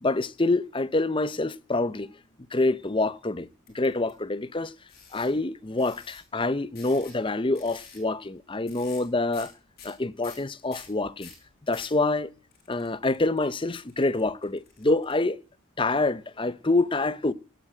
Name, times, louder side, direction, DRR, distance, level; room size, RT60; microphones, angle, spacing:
voice 1, 0.0-2.1 2.5-3.5 3.7-4.7 5.1-9.5 9.8-11.3 11.7-12.3 12.7-15.4 15.8-17.3, left 2 dB, 25° left, 0.7 m, -26 dB
sound 1, 3.7-4.1 4.9-5.3 5.8-6.2 6.8-7.3 7.6-8.0 8.7-9.1 9.3-9.5 9.8-12.0 12.5-15.1, left 7 dB, 45° left, 5.9 m, -48 dB
17.5 x 9.2 x 7.7 m
head